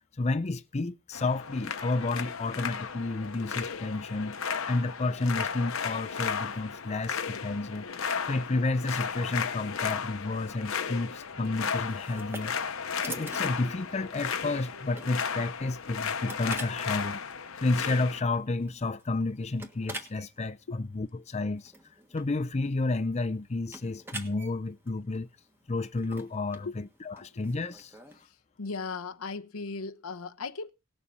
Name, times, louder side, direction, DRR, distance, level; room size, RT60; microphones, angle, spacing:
voice 1, 0.1-4.4 4.7-7.9 8.2-12.5 13.1-17.2 17.6-21.7 22.1-25.3 25.7-27.9, left 2 dB, 30° left, 0.6 m, -31 dB
sound 1, 1.1-18.2, left 6 dB, 70° left, 1.0 m, -34 dB
sound 2, 11.8-28.3, right 1 dB, 10° right, 1.5 m, -47 dB
voice 2, 28.6-30.7, left 4 dB, 90° left, 0.9 m, -37 dB
18.5 x 7.1 x 5.3 m
head